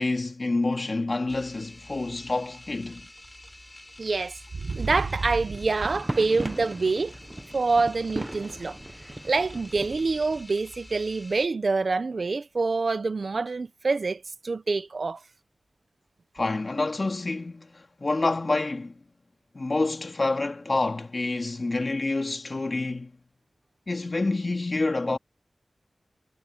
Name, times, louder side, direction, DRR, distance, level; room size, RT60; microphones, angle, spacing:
voice 1, 0.0-3.1 16.3-18.9 19.5-23.2 23.9-25.2, left 2 dB, 50° left, 2.4 m, -28 dB
sound 1, 1.3-11.5, left 1 dB, 20° left, 6.1 m, -48 dB
voice 2, 4.0-7.1 7.5-8.8 9.2-15.2, right 3 dB, 65° right, 0.9 m, -26 dB
sound 2, 5.6-10.5, right 1 dB, 20° right, 1.0 m, -38 dB
wide cardioid pair, 60°, 0 cm